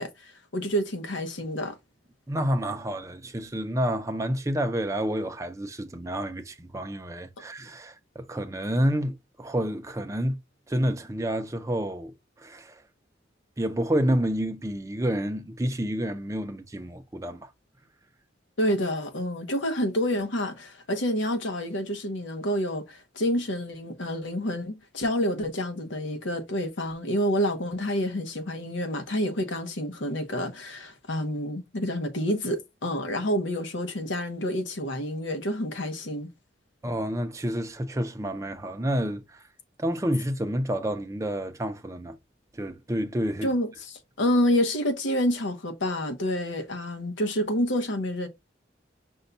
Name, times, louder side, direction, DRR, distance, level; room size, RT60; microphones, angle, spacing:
voice 1, 0.0-1.8 18.6-36.3 43.4-48.3, equal, 85° left, 0.9 m, -28 dB
voice 2, 2.3-10.4 10.7-12.8 13.6-17.5 36.8-39.4 39.8-42.2 42.5-43.5, equal, 15° right, 0.5 m, -29 dB
5.4 x 2.2 x 4.0 m
head